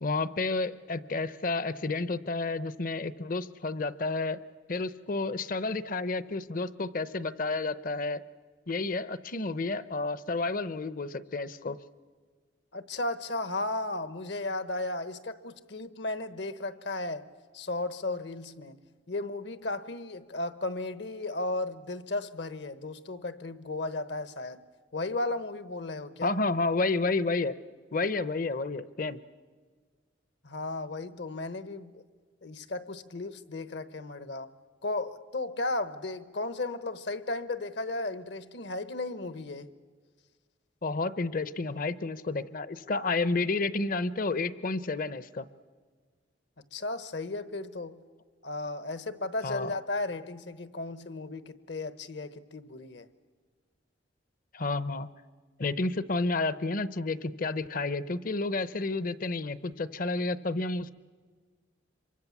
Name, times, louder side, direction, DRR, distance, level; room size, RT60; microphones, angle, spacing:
voice 1, 0.0-4.4 4.7-8.2 8.7-11.8 26.2-27.5 27.9-29.2 40.8-45.5 49.4-49.7 54.5-55.1 55.6-60.9, left 3 dB, 50° left, 0.8 m, -30 dB
voice 2, 12.7-17.3 17.5-18.8 19.1-24.6 24.9-26.3 30.4-32.0 32.4-34.5 34.8-39.7 46.7-48.0 48.4-53.1, left 2 dB, 65° left, 1.1 m, -35 dB
26.5 x 24.0 x 7.3 m
head